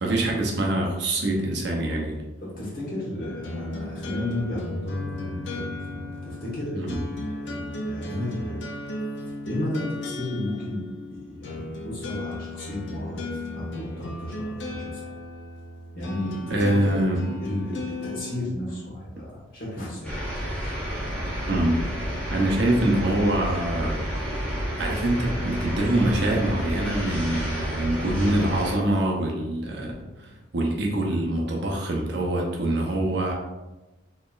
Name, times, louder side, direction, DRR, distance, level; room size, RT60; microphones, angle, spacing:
voice 1, 0.0-2.2 6.8-7.0 16.5-17.2 21.5-21.8 22.3-24.1 24.8-29.9 30.2-33.3, right 1 dB, 55° right, 0 dB, 0.6 m, -24 dB
voice 2, 2.4-8.6 9.4-10.8 11.1-15.1 15.9-16.9 17.4-20.4 30.2-30.3, left 1 dB, 45° left, -5 dB, 1.2 m, -33 dB
sound 1, 3.2-18.4, left 2 dB, 60° left, 0.5 m, -35 dB
sound 2, 20.0-28.8, equal, 5° left, 0.8 m, -30 dB
4.2 x 3.0 x 2.4 m, 1.1 s
head